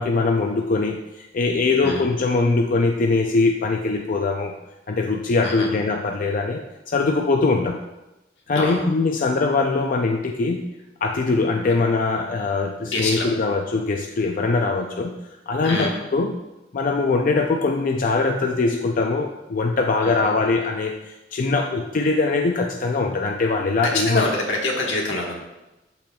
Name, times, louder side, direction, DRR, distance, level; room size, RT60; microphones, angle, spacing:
voice 1, 0.0-4.5 4.9-7.8 8.5-10.7 11.0-15.1 15.5-16.3 16.7-24.2, left 3 dB, 45° left, 3 dB, 0.4 m, -22 dB
voice 2, 12.8-13.3 15.6-15.9 20.0-20.4 23.8-25.3, left 2 dB, 80° left, -1 dB, 1.4 m, -25 dB
12.5 x 4.4 x 2.3 m, 1.0 s
head